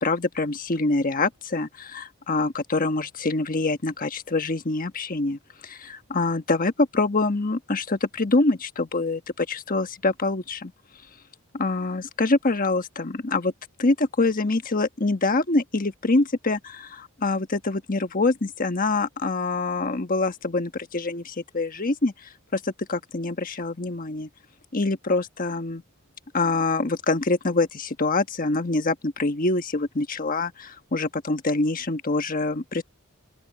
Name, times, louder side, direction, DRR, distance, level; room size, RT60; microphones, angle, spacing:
voice 1, 0.0-10.7 11.6-13.5 13.8-22.1 22.5-24.3 24.7-25.8 26.3-32.8, left 3 dB, 40° left, 1.3 m, -25 dB
open air
head